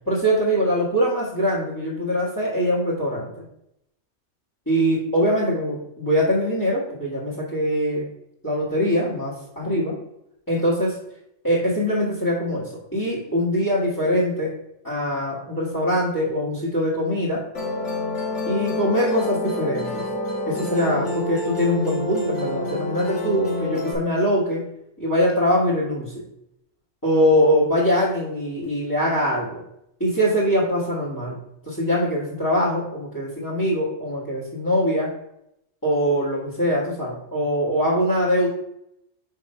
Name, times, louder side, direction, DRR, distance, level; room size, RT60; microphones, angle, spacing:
voice 1, 0.1-3.4 4.7-8.0 8.4-10.0 10.5-11.0 11.4-14.5 14.8-17.4 18.5-20.0 20.5-24.6 25.0-26.2 27.0-29.6 30.0-31.4 31.7-35.1 35.8-38.5, equal, 15° left, -11 dB, 1.7 m, -22 dB
Musical instrument, 17.5-23.9, left 2 dB, 70° left, 1.6 m, -27 dB
5.3 x 3.8 x 5.4 m, 0.80 s
omnidirectional pair, 1.3 m